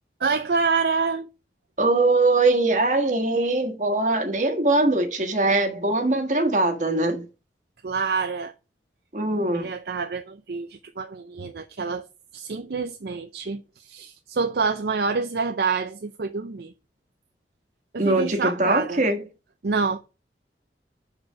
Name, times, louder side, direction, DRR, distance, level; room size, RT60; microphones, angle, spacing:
voice 1, 0.2-1.3 7.8-8.5 9.5-12.1 12.3-16.7 17.9-19.0 19.6-20.0, right 4 dB, 60° right, 0.5 m, -27 dB
voice 2, 1.8-7.3 9.1-9.7 18.0-19.2, right 2 dB, 45° right, 1.5 m, -22 dB
6.6 x 4.5 x 6.0 m
head